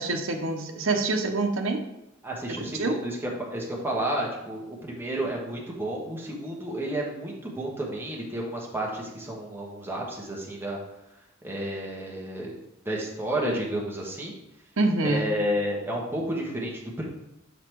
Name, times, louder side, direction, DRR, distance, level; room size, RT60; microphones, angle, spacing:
voice 1, 0.0-1.8 2.5-3.0 14.8-15.3, right 2 dB, 75° right, 4 dB, 0.9 m, -26 dB
voice 2, 2.2-10.8 11.4-12.5 12.8-14.3 15.0-17.0, right 1 dB, 10° right, -2 dB, 1.3 m, -31 dB
6.7 x 4.1 x 4.6 m, 0.88 s
head